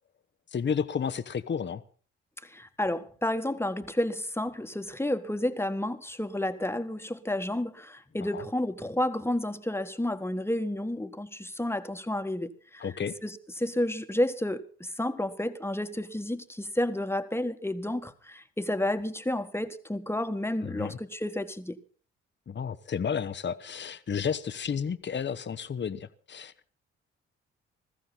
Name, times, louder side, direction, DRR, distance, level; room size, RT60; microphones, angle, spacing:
voice 1, 0.5-1.8 8.2-8.4 12.8-13.1 20.6-21.0 22.5-26.7, left 7 dB, 40° left, 1.1 m, -32 dB
voice 2, 2.4-12.9 13.2-21.8, left 1 dB, 10° left, 1.6 m, -31 dB
20.5 x 15.0 x 4.1 m
hypercardioid pair, 45°, 30 cm